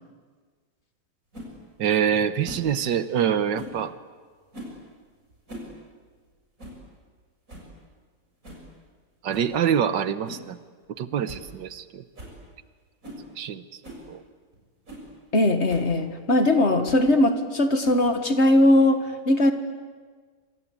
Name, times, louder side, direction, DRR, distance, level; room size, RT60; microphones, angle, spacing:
sound 1, 1.3-1.5 2.4-2.7 3.5-3.8 4.5-4.8 5.3-5.7 6.0-6.1 6.6-6.8 7.2-7.3 7.5-7.7 8.4-8.7 9.3-9.5 10.2-10.5 10.8-10.9 11.2-11.5 11.7-11.8 12.2-12.4 13.0-13.2 13.8-14.0 14.5-14.6 14.9-15.1 15.7-15.9 16.8-17.1 17.8-18.2, equal, 45° right, 7.0 m, -41 dB
voice 1, 1.8-3.9 9.2-10.6 11.0-12.0 13.4-13.6 14.1-14.2, right 8 dB, 80° right, 12 dB, 1.8 m, -25 dB
voice 2, 15.3-19.5, left 1 dB, 40° left, 7 dB, 1.9 m, -20 dB
26.5 x 25.5 x 8.5 m, 1.5 s
omnidirectional pair, 1.9 m